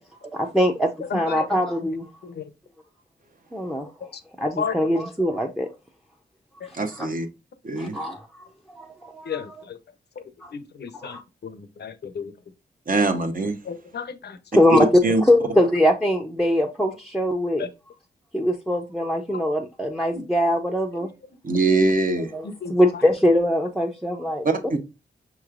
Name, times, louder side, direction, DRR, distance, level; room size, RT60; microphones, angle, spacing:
voice 1, 0.3-2.1 3.5-3.9 4.4-5.7 7.0-7.1 7.8-8.2 8.8-9.4 10.4-10.5 10.9-11.2 14.5-14.9 15.3-17.7 18.3-21.1 22.3-24.4, equal, ahead, 0.5 m, -22 dB
voice 2, 1.1-1.4 2.2-2.5 4.1-4.2 4.6-4.9 9.3-9.8 10.2-10.3 10.5-11.2 11.4-12.3 13.7-14.4 17.6-17.7 19.3-19.4 20.9-21.1 22.4-23.0, left 6 dB, 65° left, 0.6 m, -33 dB
voice 3, 6.7-7.3 7.6-7.9 12.9-13.6 14.7-15.2 21.4-22.3 24.4-24.8, right 2 dB, 50° right, 0.9 m, -22 dB
5.7 x 3.1 x 2.4 m
cardioid pair, 55°, 19 cm